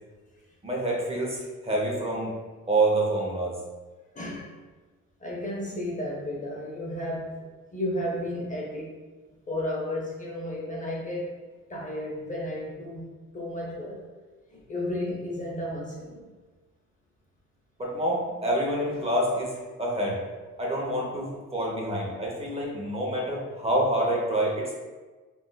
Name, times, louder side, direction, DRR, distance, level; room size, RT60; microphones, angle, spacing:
voice 1, 0.6-2.3 2.7-3.6 17.8-20.2 20.6-24.7, right 1 dB, 20° right, -3 dB, 0.8 m, -27 dB
voice 2, 4.1-4.5 5.2-8.9 9.5-11.3 11.7-13.1 13.3-14.0 14.5-16.3, left 1 dB, 25° left, -3 dB, 0.6 m, -33 dB
3.6 x 2.5 x 2.2 m, 1.3 s
cardioid pair, 90°, 30 cm